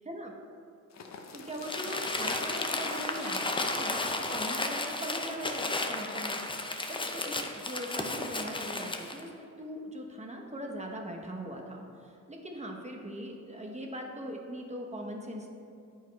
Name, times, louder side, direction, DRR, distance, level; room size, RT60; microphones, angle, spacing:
sound 1, 0.9-6.6 7.0-7.1 7.3-7.4, left 5 dB, 55° left, 0.7 m, -45 dB
voice 1, 1.3-6.4 6.9-15.5, equal, 20° right, 1 dB, 1.0 m, -40 dB
Crumpling crinkling, 1.6-9.2, left 2 dB, 15° left, 0.5 m, -33 dB
9.7 x 4.6 x 4.6 m, 2.4 s
wide cardioid pair, 110°, 32 cm